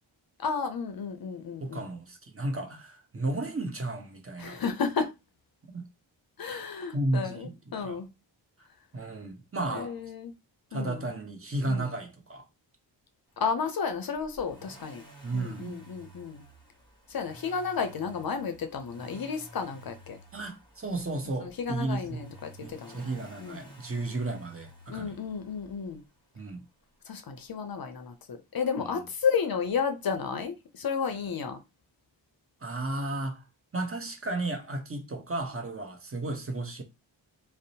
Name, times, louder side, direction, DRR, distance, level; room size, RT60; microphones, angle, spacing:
voice 1, 0.4-1.8 4.4-5.1 6.4-8.1 9.6-10.3 10.7-11.0 11.6-11.9 13.4-15.0 15.3-16.4 17.1-20.2 21.4-23.1 23.4-23.6 24.9-26.0 27.1-31.6, left 6 dB, 50° left, 0.5 m, -32 dB
voice 2, 1.6-4.6 5.7-5.9 6.5-6.6 6.9-8.0 8.9-10.0 10.7-12.5 15.2-15.8 20.3-22.2 22.6-25.2 26.4-26.6 28.8-29.0 32.6-33.4 33.7-36.8, right 2 dB, 30° right, 0.7 m, -33 dB
Accelerating revving vroom, 14.1-26.1 27.4-27.5, equal, 10° left, 1.1 m, -52 dB
2.6 x 2.0 x 2.7 m
cardioid pair, 45°, 48 cm